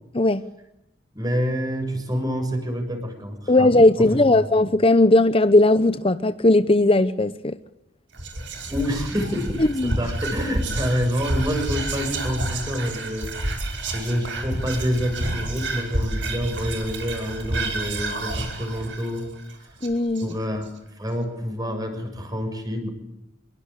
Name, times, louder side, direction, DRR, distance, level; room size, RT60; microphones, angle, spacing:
voice 1, 1.1-3.7 4.0-4.5 8.7-13.6 13.9-19.3 20.2-20.7 21.0-22.9, equal, 20° right, 6 dB, 6.6 m, -27 dB
voice 2, 3.5-7.5 9.6-10.0 19.8-20.3, left 2 dB, 30° left, 12 dB, 0.9 m, -18 dB
Whispering, 8.1-20.6, right 2 dB, 65° right, 5.6 m, -29 dB
25.5 x 22.5 x 8.5 m, 0.84 s
head